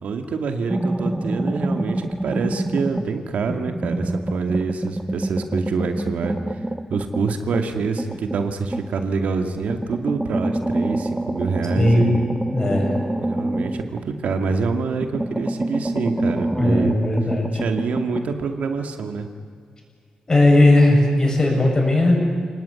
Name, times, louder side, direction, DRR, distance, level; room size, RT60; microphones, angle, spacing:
voice 1, 0.0-6.6 6.9-12.3 13.2-16.9 17.5-19.3, right 4 dB, 70° right, 6 dB, 2.3 m, -26 dB
sound 1, 0.7-3.2 3.5-9.1 9.6-14.6 14.9-18.3, right 1 dB, 10° right, 0.8 m, -26 dB
voice 2, 11.8-12.1 12.5-12.9 16.6-17.6 20.3-22.2, left 1 dB, 25° left, 1 dB, 7.2 m, -17 dB
29.0 x 19.0 x 9.7 m, 2.2 s
wide cardioid pair, 135°, 2 cm